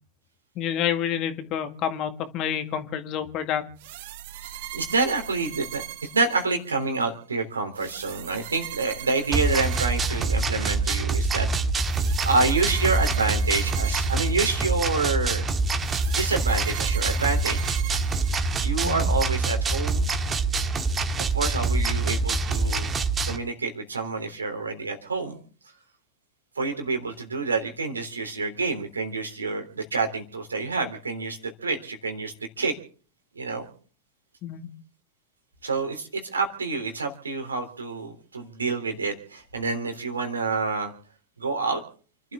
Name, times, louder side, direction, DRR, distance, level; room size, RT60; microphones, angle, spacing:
voice 1, 0.6-3.7 18.8-19.1 34.4-34.7, left 9 dB, 35° left, 8 dB, 2.0 m, -28 dB
sound 1, 3.8-6.9 7.8-10.9 11.8-15.0 15.8-18.9, right 13 dB, 50° right, 1.2 m, -40 dB
voice 2, 4.7-5.8 6.1-11.5 12.2-15.5 16.1-17.7 18.6-20.1 21.2-22.9 23.3-25.4 26.6-32.8 33.4-33.7 35.6-40.9 41.4-41.8, right 3 dB, 75° right, 5 dB, 3.4 m, -28 dB
sound 2, 9.3-23.4, right 3 dB, 20° right, 1.7 m, -25 dB
29.0 x 12.5 x 3.7 m, 0.43 s
figure-of-eight pair, 90°, 0 cm